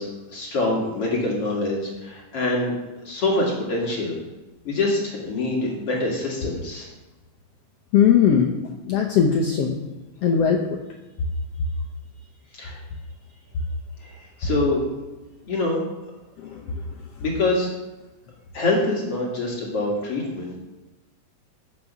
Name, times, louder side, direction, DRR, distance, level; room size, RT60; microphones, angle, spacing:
voice 1, 0.0-4.2 4.6-6.9 12.5-12.8 14.0-14.8 15.5-15.8 17.2-17.7 18.5-20.6, left 2 dB, 50° left, -2 dB, 2.7 m, -25 dB
voice 2, 7.9-8.5 8.9-9.8 10.2-10.8 16.4-16.5, left 7 dB, 70° left, 1 dB, 1.5 m, -19 dB
15.0 x 6.9 x 6.1 m, 1.1 s
omnidirectional pair, 3.8 m